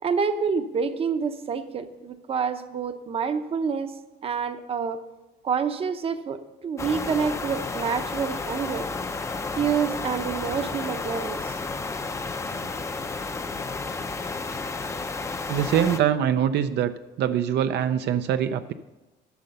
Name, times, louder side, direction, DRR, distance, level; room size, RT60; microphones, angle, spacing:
voice 1, 0.0-3.9 4.2-5.0 5.4-8.9 9.6-11.6 12.5-12.7, right 6 dB, 30° right, 9 dB, 0.7 m, -27 dB
sound 1, 6.8-16.0, left 3 dB, 15° left, 0.5 m, -32 dB
voice 2, 15.5-18.7, right 9 dB, 70° right, 10 dB, 0.5 m, -24 dB
12.5 x 6.7 x 6.7 m, 1.1 s
cardioid pair, 165°, 18 cm